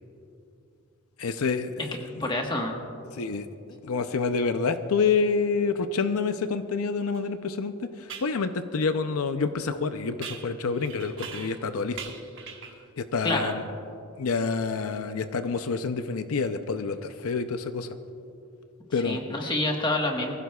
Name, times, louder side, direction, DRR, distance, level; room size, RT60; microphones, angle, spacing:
voice 1, 1.2-1.9 2.2-2.3 3.2-3.5 3.8-7.7 8.0-12.0 13.0-13.7 14.2-17.9 18.9-19.2, left 4 dB, 85° left, 9 dB, 0.6 m, -27 dB
voice 2, 2.0-2.8 13.2-13.5 19.0-20.3, left 2 dB, 20° left, 1 dB, 1.3 m, -27 dB
sound 1, 7.1-7.2 8.1-8.4 10.2-11.7 12.0-12.8, right 6 dB, 60° right, 1.3 m, -41 dB
23.0 x 15.5 x 2.3 m, 2.7 s
head